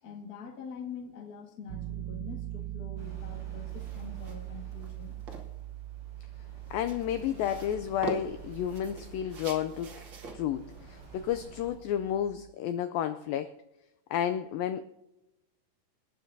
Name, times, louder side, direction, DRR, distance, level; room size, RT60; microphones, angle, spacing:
voice 1, 0.0-5.2, left 5 dB, 70° left, 3 dB, 0.8 m, -44 dB
Piano, 1.7-12.5, right 15 dB, 85° right, 2.4 m, -42 dB
sound 1, 3.0-11.8, right 1 dB, 25° right, 4.7 m, -54 dB
sound 2, 3.7-12.2, right 2 dB, 65° right, 1.1 m, -45 dB
voice 2, 6.7-9.9 10.3-13.6 14.1-14.8, left 10 dB, 85° left, 9 dB, 2.0 m, -31 dB
27.5 x 9.5 x 2.7 m, 0.95 s
omnidirectional pair, 4.7 m